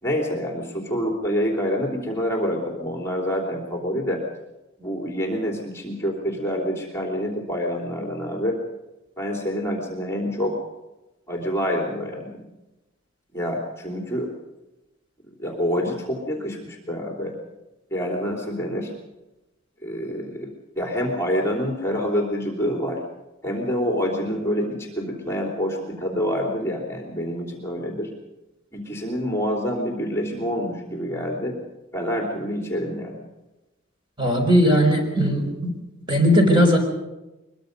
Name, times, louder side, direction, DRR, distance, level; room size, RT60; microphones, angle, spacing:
voice 1, 0.0-4.2 4.8-8.6 9.2-10.6 11.3-12.5 13.3-14.3 15.4-17.3 17.9-18.9 19.8-20.5 20.8-23.0 23.4-28.1 28.7-31.6 31.9-33.2, equal, 15° left, -1 dB, 3.2 m, -27 dB
voice 2, 34.2-35.7 36.1-36.8, equal, 25° right, 2 dB, 4.8 m, -18 dB
23.0 x 22.0 x 5.3 m, 1.0 s
head